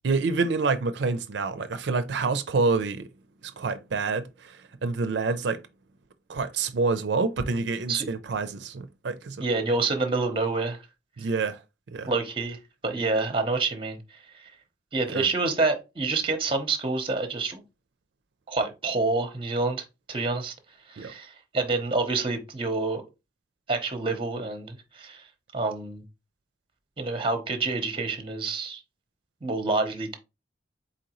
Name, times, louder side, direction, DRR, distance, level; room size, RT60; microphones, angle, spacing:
voice 1, 0.0-3.1 3.4-5.6 6.3-9.5 11.2-11.6 11.9-12.1 15.1-15.3 21.0-21.1, right 4 dB, 70° right, 0.4 m, -27 dB
voice 2, 9.4-10.8 11.2-11.3 12.0-12.6 12.8-14.0 14.3-14.5 14.9-17.6 18.5-20.5 20.9-23.0 23.7-25.3 25.5-26.0 27.0-28.8 29.4-30.2, right 3 dB, 25° right, 0.7 m, -27 dB
4.2 x 3.8 x 2.9 m
head